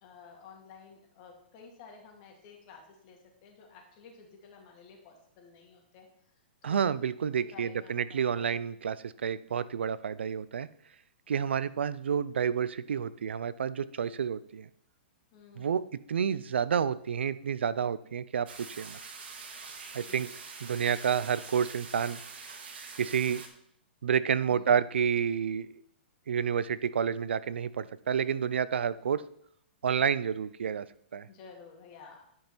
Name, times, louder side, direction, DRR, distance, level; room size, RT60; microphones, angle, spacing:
voice 1, 0.0-6.1 6.6-7.0 7.4-8.4 15.3-15.9 20.0-20.3 24.5-24.7 31.3-32.2, left 5 dB, 40° left, 1 dB, 2.4 m, -52 dB
voice 2, 6.6-10.7 11.3-14.7 15.6-18.5 18.8-19.0 19.9-20.3 20.6-22.2 23.0-23.4 24.0-25.7 26.3-29.2 29.8-30.9 31.1-31.3, right 7 dB, 85° right, 17 dB, 0.5 m, -29 dB
sound 1, 18.5-23.5, right 5 dB, 65° right, 1.7 m, -45 dB
10.5 x 5.4 x 4.4 m, 0.69 s
hypercardioid pair, 135°, 6 cm